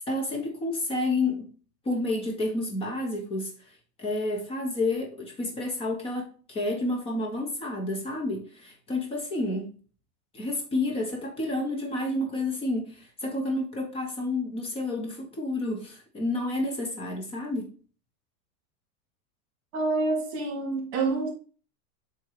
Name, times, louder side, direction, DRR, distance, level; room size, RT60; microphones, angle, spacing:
voice 1, 0.1-1.5 1.8-3.5 4.0-9.8 10.3-17.8, left 2 dB, 15° left, 1.2 m, -30 dB
voice 2, 19.7-21.3, right 3 dB, 50° right, 2.5 m, -27 dB
7.3 x 2.8 x 4.8 m
supercardioid pair, 170°, 44 cm